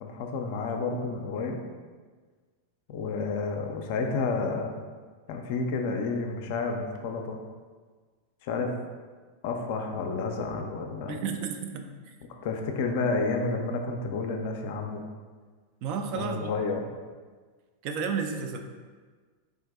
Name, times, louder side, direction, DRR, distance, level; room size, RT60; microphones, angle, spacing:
voice 1, 0.0-1.6 2.9-4.8 5.3-7.4 8.4-8.7 9.4-11.2 12.4-15.0 16.2-16.9, left 4 dB, 50° left, 3 dB, 0.4 m, -30 dB
voice 2, 11.1-11.9 15.8-16.5 17.8-18.6, right 6 dB, 45° right, 5 dB, 0.3 m, -32 dB
3.6 x 2.6 x 3.5 m, 1.5 s
figure-of-eight pair, 90°, 0 cm